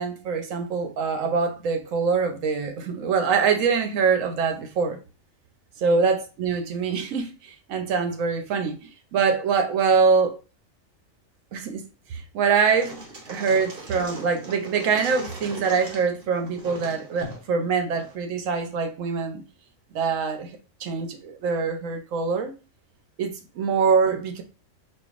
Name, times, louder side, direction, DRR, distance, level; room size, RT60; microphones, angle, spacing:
voice 1, 0.0-5.0 5.8-10.4 11.5-11.8 12.1-13.0 13.3-19.4 19.9-20.5 20.8-22.5 23.2-24.4, right 5 dB, 75° right, 1.1 m, -24 dB
sound 1, 12.6-18.2, right 1 dB, 50° right, 1.1 m, -40 dB
4.4 x 2.5 x 2.4 m
omnidirectional pair, 1.4 m